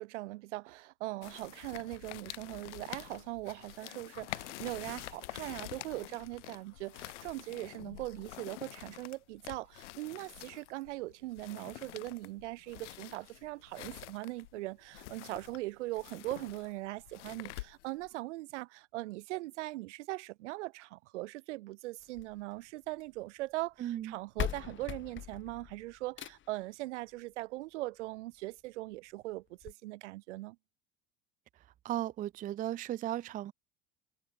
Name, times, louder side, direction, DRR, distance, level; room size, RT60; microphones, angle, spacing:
voice 1, 0.0-30.6, right 19 dB, 70° right, 0.6 m, -40 dB
sound 1, 1.2-18.1, left 18 dB, 70° left, 0.6 m, -47 dB
sound 2, 22.0-23.2 24.0-24.1 24.4-26.7 28.0-28.1 28.6-28.7 28.9-29.0 29.6-29.7, left 11 dB, 30° left, 1.1 m, -40 dB
voice 2, 23.8-24.1 31.8-33.5, right 13 dB, 25° right, 0.4 m, -36 dB
hypercardioid pair, 75°, 37 cm